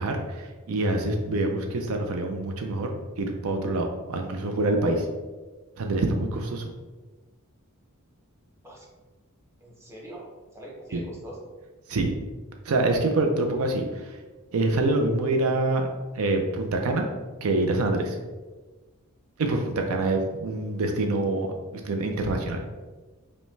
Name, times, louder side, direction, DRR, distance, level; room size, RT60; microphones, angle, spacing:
voice 1, 0.0-2.9 3.2-5.1 5.8-6.7 10.9-11.0 11.9-12.1 12.7-14.2 14.5-15.9 16.1-17.1 17.4-18.2 19.4-22.6, right 2 dB, 70° right, 4 dB, 0.4 m, -26 dB
voice 2, 9.6-11.5, right 1 dB, 10° right, -4 dB, 0.8 m, -43 dB
5.3 x 2.1 x 3.2 m, 1.3 s
head